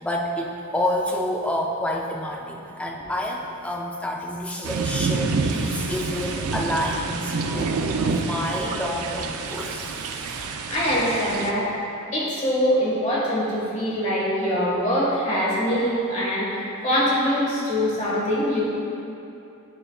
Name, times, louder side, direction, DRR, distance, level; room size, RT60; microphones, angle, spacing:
voice 1, 0.0-7.7 8.0-10.3, left 1 dB, 5° left, -1 dB, 0.4 m, -29 dB
sound 1, 4.6-11.5, right 4 dB, 80° right, 0.4 m, -27 dB
voice 2, 10.7-11.7 12.1-18.7, equal, 30° left, -7 dB, 1.5 m, -23 dB
9.0 x 5.6 x 2.3 m, 2.7 s
head